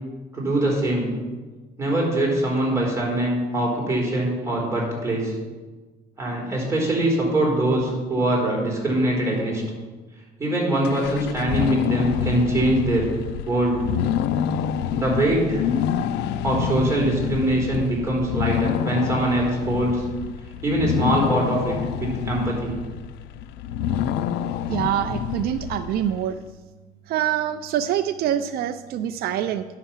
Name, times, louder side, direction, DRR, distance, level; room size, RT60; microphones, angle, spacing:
voice 1, 0.3-1.1 1.8-5.3 6.2-9.6 10.4-13.1 13.5-13.8 14.9-15.7 16.4-20.0 20.6-22.7, right 1 dB, 15° right, -3 dB, 4.0 m, -23 dB
sound 1, 10.8-26.3, left 9 dB, 85° left, 0.5 m, -27 dB
voice 2, 24.7-26.4 27.1-29.6, right 10 dB, 65° right, 9 dB, 0.5 m, -25 dB
9.8 x 5.8 x 7.2 m, 1.3 s
cardioid pair, 110°, 17 cm